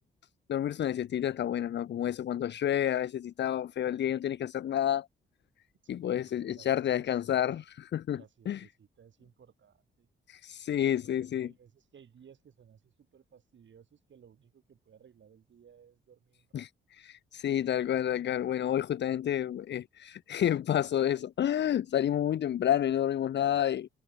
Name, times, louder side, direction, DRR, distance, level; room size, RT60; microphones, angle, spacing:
voice 1, 0.5-5.1 5.9-7.6 7.9-8.2 8.5-8.6 10.3-11.5 16.5-16.7 17.0-23.9, left 10 dB, 55° left, 0.6 m, -29 dB
voice 2, 5.8-7.7 8.1-10.1 10.8-16.6, right 8 dB, 60° right, 7.5 m, -59 dB
cardioid pair, 85°, 21 cm